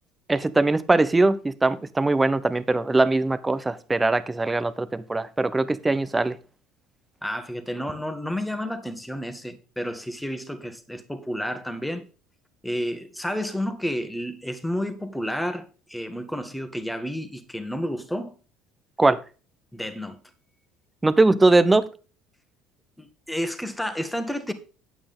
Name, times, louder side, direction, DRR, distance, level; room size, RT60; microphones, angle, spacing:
voice 1, 0.3-6.4 19.0-19.2 21.0-21.9, right 2 dB, 15° right, 0.8 m, -21 dB
voice 2, 7.2-12.1 12.6-18.4 19.7-20.2 23.0-24.5, equal, 5° left, 1.6 m, -31 dB
9.2 x 8.6 x 3.7 m
supercardioid pair, 110°, 0 cm